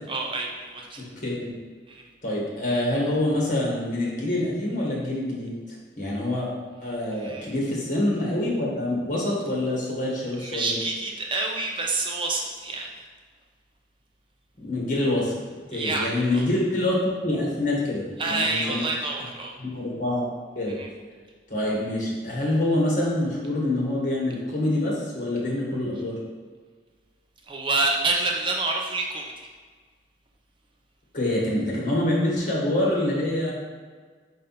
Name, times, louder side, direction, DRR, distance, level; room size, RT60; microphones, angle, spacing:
voice 1, 0.1-1.0 1.9-2.0 7.1-7.5 10.4-12.9 15.7-16.4 18.2-19.5 20.8-20.9 27.5-29.3, right 3 dB, 30° right, 0 dB, 0.6 m, -28 dB
voice 2, 1.0-1.6 2.2-6.5 6.8-10.8 14.6-15.3 15.7-18.8 19.6-20.3 20.6-20.8 21.5-26.1 31.1-33.5, left 1 dB, 45° left, -4 dB, 1.9 m, -26 dB
5.3 x 5.1 x 4.2 m, 1.5 s
head